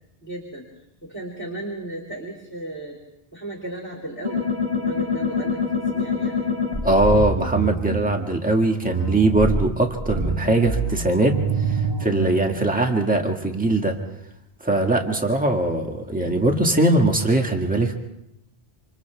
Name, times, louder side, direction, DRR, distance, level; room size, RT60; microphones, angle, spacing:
voice 1, 0.2-3.0 3.3-4.5 4.7-6.5, right 1 dB, 10° left, -1 dB, 3.3 m, -35 dB
sound 1, 4.2-8.0 8.8-12.4, left 1 dB, 35° right, 5.5 m, -25 dB
voice 2, 6.8-11.4 11.7-14.0 14.6-17.9, right 2 dB, 5° right, 2 dB, 1.9 m, -21 dB
28.0 x 26.5 x 3.5 m, 0.82 s
omnidirectional pair, 1.1 m